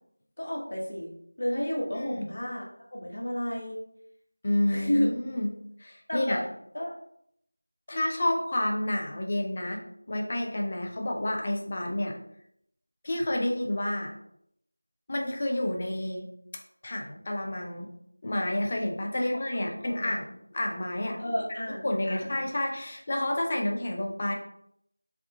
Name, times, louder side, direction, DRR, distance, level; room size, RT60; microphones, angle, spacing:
voice 1, 0.4-3.8 4.7-5.1 6.1-6.4 6.7-7.0 7.9-8.2 19.1-20.1 21.2-22.3, equal, 45° left, -2 dB, 1.2 m, -32 dB
voice 2, 1.9-2.3 4.4-5.5 5.8-6.4 7.9-9.8 10.1-12.2 13.0-14.1 15.1-16.3 16.8-17.9 18.2-21.2 21.8-24.3, left 1 dB, 25° left, 1 dB, 0.6 m, -29 dB
3.6 x 3.6 x 3.5 m, 0.72 s
figure-of-eight pair, 175°, 0 cm